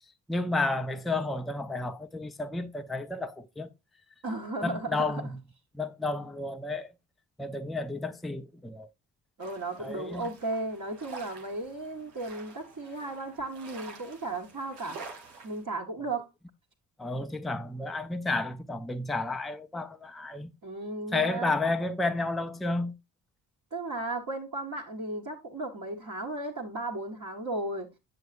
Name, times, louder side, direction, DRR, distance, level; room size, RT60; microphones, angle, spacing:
voice 1, 0.3-3.7 4.6-5.4 5.7-6.9 7.4-8.9 9.8-10.3 17.0-20.5 21.1-22.9, left 2 dB, ahead, 0.5 m, -31 dB
voice 2, 4.2-5.2 9.4-15.0 15.4-16.3 20.6-21.6 23.7-27.9, right 2 dB, 35° right, 1.6 m, -35 dB
sound 1, 9.4-15.6, right 4 dB, 90° right, 1.0 m, -48 dB
7.7 x 6.7 x 2.6 m
hypercardioid pair, 40°, 48 cm